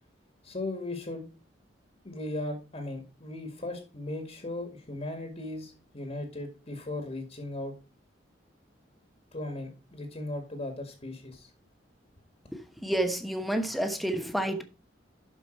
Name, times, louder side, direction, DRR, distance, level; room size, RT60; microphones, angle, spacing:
voice 1, 0.4-1.3 2.0-7.7 9.3-11.5, left 2 dB, 35° left, 1.8 m, -37 dB
voice 2, 12.5-14.6, right 1 dB, ahead, 1.1 m, -30 dB
11.5 x 5.2 x 4.5 m
head